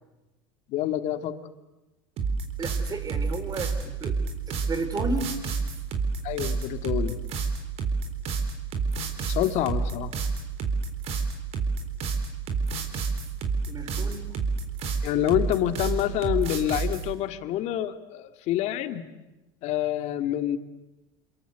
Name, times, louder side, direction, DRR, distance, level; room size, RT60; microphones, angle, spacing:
voice 1, 0.7-1.4 6.2-7.3 9.3-10.1 15.0-19.1 19.6-20.6, left 12 dB, 60° left, 9 dB, 2.0 m, -27 dB
sound 1, 2.2-17.1, right 4 dB, 50° right, 4.1 m, -28 dB
voice 2, 2.6-5.3 13.7-14.3, right 3 dB, 30° right, 9 dB, 4.3 m, -33 dB
28.5 x 22.0 x 8.1 m, 1.0 s
supercardioid pair, 100°, 13 cm